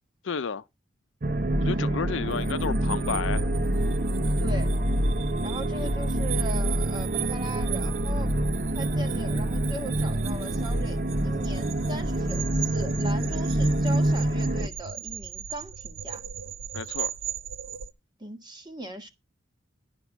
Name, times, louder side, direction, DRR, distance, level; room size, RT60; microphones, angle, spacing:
voice 1, 0.2-0.6 1.6-3.5 16.7-17.1, left 5 dB, 75° left, 0.5 m, -31 dB
sound 1, 1.2-14.7, right 1 dB, 45° right, 0.7 m, -26 dB
sound 2, 2.2-17.9, right 8 dB, 80° right, 0.6 m, -38 dB
voice 2, 4.4-4.7 5.4-8.3 8.7-11.0 11.2-16.2 18.2-19.1, right 1 dB, 20° right, 1.4 m, -39 dB
11.5 x 5.2 x 7.1 m
head